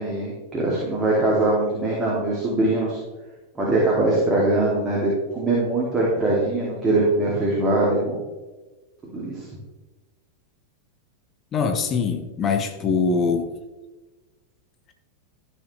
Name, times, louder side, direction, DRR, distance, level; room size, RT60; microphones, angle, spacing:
voice 1, 0.0-3.0 3.6-8.2 9.1-9.5, right 2 dB, 15° right, -6 dB, 2.6 m, -22 dB
voice 2, 11.5-13.5, left 5 dB, 30° left, 6 dB, 1.0 m, -23 dB
13.5 x 6.6 x 3.3 m, 1.2 s
figure-of-eight pair, 90°, 0 cm